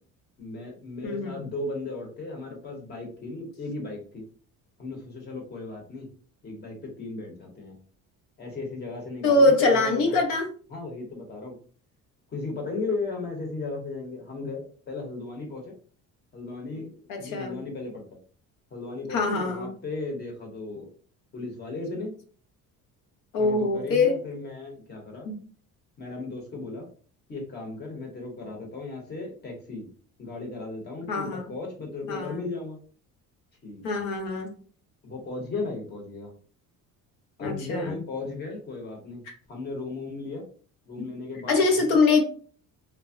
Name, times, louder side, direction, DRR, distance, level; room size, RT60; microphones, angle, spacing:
voice 1, 0.4-4.2 4.8-6.1 6.4-7.8 8.4-10.2 10.7-11.6 12.3-15.7 16.3-18.2 18.7-20.9 21.3-22.2 23.4-25.3 26.0-26.9 27.3-29.9 30.2-32.8 33.6-34.0 35.0-36.3 37.4-39.2 39.5-40.4 40.8-42.0, left 3 dB, 30° left, 1 dB, 0.8 m, -36 dB
voice 2, 1.0-1.4 9.2-10.5 17.1-17.6 19.1-19.7 23.3-24.1 25.3-25.4 31.1-31.4 32.1-32.4 33.8-34.5 37.4-38.0 39.3-39.4 41.0-41.1 41.5-42.2, left 3 dB, 85° left, 3 dB, 0.8 m, -23 dB
3.3 x 2.0 x 2.5 m, 0.42 s
cardioid pair, 165°, 33 cm